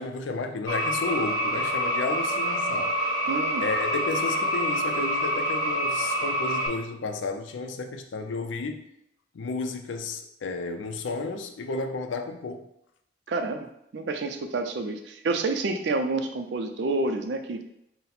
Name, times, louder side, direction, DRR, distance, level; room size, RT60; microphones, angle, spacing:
voice 1, 0.0-3.0 3.6-8.9 9.3-12.7, left 3 dB, 90° left, 6 dB, 0.4 m, -32 dB
sound 1, 0.7-6.7, equal, 20° left, 0.9 m, -27 dB
voice 2, 3.3-3.6 13.3-17.7, right 3 dB, 65° right, 6 dB, 0.4 m, -29 dB
4.0 x 2.1 x 4.1 m, 0.79 s
head